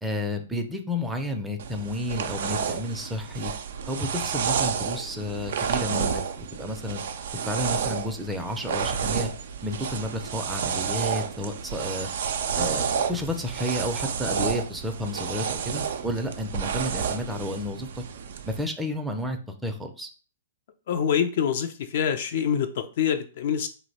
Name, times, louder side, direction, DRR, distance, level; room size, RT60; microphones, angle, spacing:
voice 1, 0.0-3.5 3.9-7.0 7.5-9.3 9.6-12.1 12.6-18.0 18.5-20.1, left 1 dB, 5° right, 4 dB, 0.5 m, -31 dB
sound 1, 1.6-18.6, right 7 dB, 65° right, 0.3 m, -30 dB
voice 2, 20.9-23.7, left 8 dB, 60° left, 7 dB, 0.4 m, -25 dB
2.8 x 2.0 x 4.0 m, 0.37 s
hypercardioid pair, 115°, 0 cm